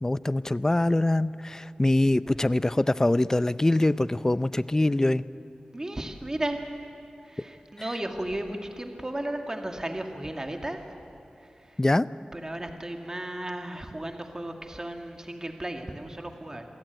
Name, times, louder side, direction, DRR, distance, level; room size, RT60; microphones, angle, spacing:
voice 1, 0.0-5.2 11.8-12.1, left 1 dB, 20° left, 16 dB, 0.6 m, -24 dB
voice 2, 5.7-6.6 7.2-10.8 11.7-11.8 12.3-16.6, right 1 dB, 25° right, 4 dB, 2.1 m, -34 dB
26.5 x 17.0 x 9.4 m, 3.0 s
wide cardioid pair, 80°, 3 cm